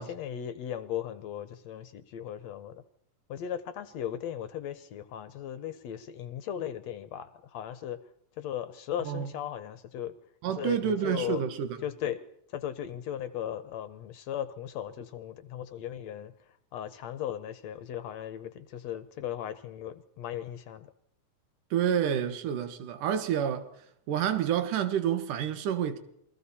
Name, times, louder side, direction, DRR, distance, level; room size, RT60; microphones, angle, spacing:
voice 1, 0.0-2.8 3.3-8.0 8.4-10.1 10.6-11.4 11.8-12.2 12.5-16.3 16.7-20.9, left 10 dB, 70° left, 1.9 m, -37 dB
voice 2, 10.4-11.8 21.7-23.7 24.1-26.0, right 9 dB, 85° right, 2.9 m, -29 dB
29.0 x 22.0 x 4.2 m
omnidirectional pair, 3.6 m